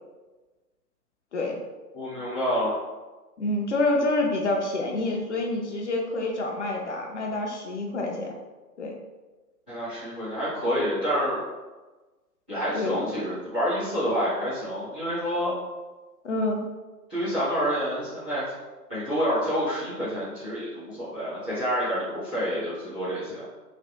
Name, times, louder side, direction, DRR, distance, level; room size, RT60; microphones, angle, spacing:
voice 1, 1.9-2.8 9.7-11.4 12.5-15.5 17.1-18.5 18.9-23.4, equal, 5° right, -16 dB, 0.5 m, -28 dB
voice 2, 3.4-8.3 8.8-8.9 12.7-13.1 16.2-16.7, left 2 dB, 50° left, 0 dB, 0.6 m, -27 dB
3.2 x 2.9 x 2.7 m, 1.2 s
figure-of-eight pair, 125°, 48 cm